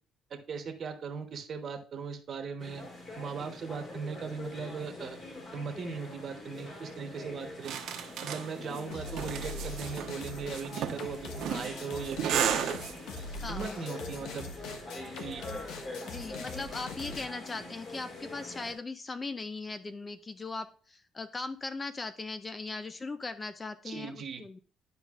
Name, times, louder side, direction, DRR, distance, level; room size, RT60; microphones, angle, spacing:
voice 1, 0.3-2.8 3.1-5.2 5.5-7.7 8.2-12.8 13.5-14.5 15.1-15.4 23.8-24.4, right 5 dB, 45° right, 5 dB, 1.2 m, -38 dB
sound 1, 2.6-18.7, left 2 dB, 45° left, 2.3 m, -44 dB
sound 2, 7.6-13.2, right 9 dB, 70° right, 1.1 m, -34 dB
voice 2, 8.6-9.1 13.4-13.8 15.4-15.7 16.0-24.6, left 3 dB, 25° left, 12 dB, 0.4 m, -39 dB
sound 3, 8.9-17.3, left 3 dB, 75° left, 1.0 m, -42 dB
11.0 x 5.0 x 2.5 m, 0.42 s
cardioid pair, 115°, 0 cm